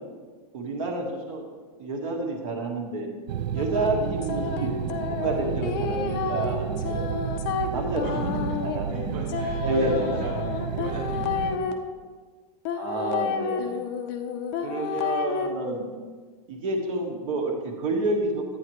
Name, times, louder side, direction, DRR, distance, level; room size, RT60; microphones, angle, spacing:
voice 1, 0.5-1.4 1.8-3.1 3.5-4.7 5.1-7.1 7.7-8.9 9.6-10.2 12.8-13.8 14.6-15.8 16.5-18.4, right 2 dB, 50° right, 1 dB, 1.6 m, -29 dB
sound 1, 3.3-11.6, right 8 dB, 90° right, 0.5 m, -31 dB
sound 2, 3.6-11.7 12.6-15.5, left 6 dB, 30° left, 0.5 m, -30 dB
voice 2, 8.0-11.8, right 1 dB, 25° right, -2 dB, 0.9 m, -37 dB
11.0 x 9.0 x 3.1 m, 1.5 s
supercardioid pair, 175°, 21 cm